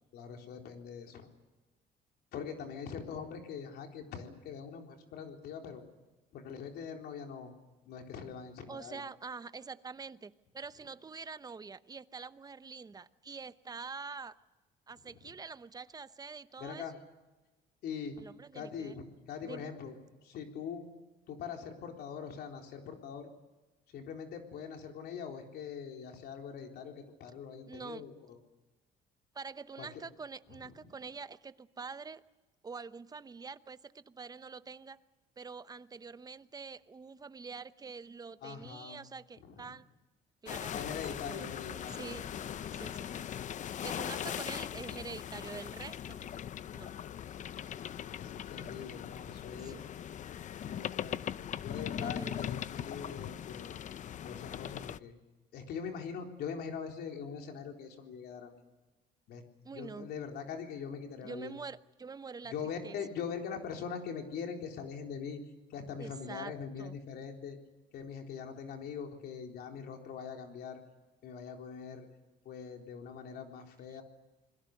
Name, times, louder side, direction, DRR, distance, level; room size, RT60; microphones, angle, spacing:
voice 1, 0.1-1.3 2.3-5.8 6.3-7.5 7.9-9.0 16.6-17.0 17.8-18.2 18.5-20.0 20.2-20.9 21.3-23.3 23.9-28.4 29.8-30.0 30.5-30.9 38.4-39.0 39.4-39.8 40.6-42.0 42.3-43.2 46.1-46.4 48.2-49.8 50.6-51.2 51.6-53.7 54.2-55.1 55.5-58.6 59.3-59.4 59.7-61.5 62.4-65.4 65.7-67.6 67.9-70.8 71.2-72.1 72.4-74.0, left 6 dB, 70° left, 3 dB, 3.9 m, -42 dB
voice 2, 8.7-14.3 14.9-16.9 18.2-18.9 19.4-19.7 27.7-28.0 29.3-32.2 32.6-35.0 35.4-39.9 40.4-40.9 41.3-41.5 41.9-42.3 42.7-43.1 43.8-46.2 46.7-46.9 49.6-49.8 52.0-52.4 59.6-60.1 61.2-62.5 62.8-63.0 66.0-66.5 66.8-66.9, right 4 dB, 20° right, 14 dB, 0.9 m, -45 dB
sound 1, 40.5-55.0, left 9 dB, 45° left, 0.7 m, -40 dB
27.5 x 21.5 x 6.6 m, 1.2 s
cardioid pair, 110°, 17 cm